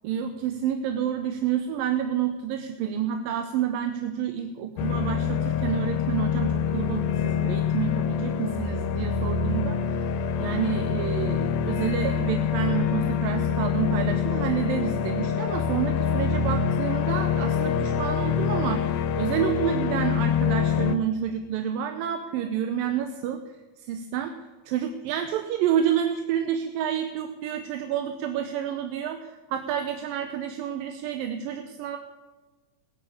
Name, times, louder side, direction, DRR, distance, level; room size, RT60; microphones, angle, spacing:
voice 1, 0.0-10.0 10.4-23.4 23.8-24.3 24.7-32.0, right 9 dB, 75° right, 6 dB, 2.5 m, -29 dB
sound 1, 4.8-21.0, left 7 dB, 85° left, 2.6 m, -26 dB
20.0 x 7.9 x 8.4 m, 1.3 s
omnidirectional pair, 4.2 m